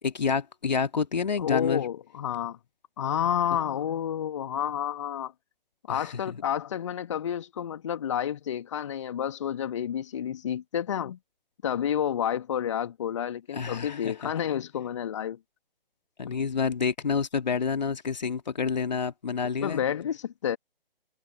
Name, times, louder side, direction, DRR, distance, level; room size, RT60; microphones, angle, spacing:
voice 1, 0.0-1.9 5.9-6.4 13.5-14.3 16.2-19.8, left 5 dB, 45° left, 2.4 m, -28 dB
voice 2, 1.4-2.6 3.0-5.3 5.9-11.2 11.6-15.4 16.3-16.4 19.6-20.6, left 9 dB, 30° left, 2.0 m, -30 dB
figure-of-eight pair, 145°, 29 cm